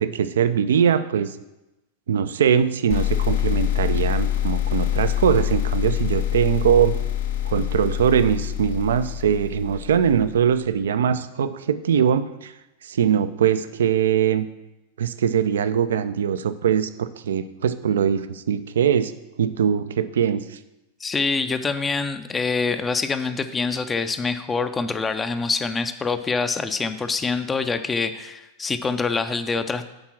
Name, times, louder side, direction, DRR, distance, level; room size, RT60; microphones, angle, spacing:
voice 1, 0.0-1.4 2.1-7.0 7.4-12.5 12.8-14.5 15.0-19.1 19.4-20.6, right 8 dB, 65° right, 12 dB, 0.4 m, -21 dB
sound 1, 2.9-10.4, left 12 dB, 65° left, 0.7 m, -25 dB
voice 2, 21.0-29.9, left 4 dB, 15° left, 9 dB, 0.5 m, -25 dB
8.6 x 3.7 x 6.0 m, 0.97 s
figure-of-eight pair, 90°, 0 cm